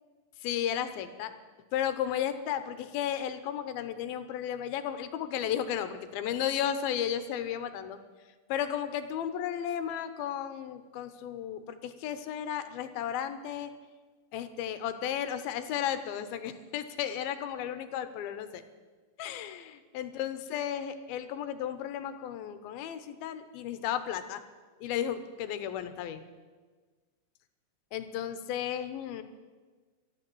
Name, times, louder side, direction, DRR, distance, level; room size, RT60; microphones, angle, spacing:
voice 1, 0.4-1.3 1.7-8.0 8.5-13.7 14.3-18.6 19.2-24.4 24.8-26.2 27.9-29.2, left 10 dB, 85° left, 10 dB, 2.7 m, -34 dB
13.0 x 12.5 x 7.8 m, 1.4 s
omnidirectional pair, 4.3 m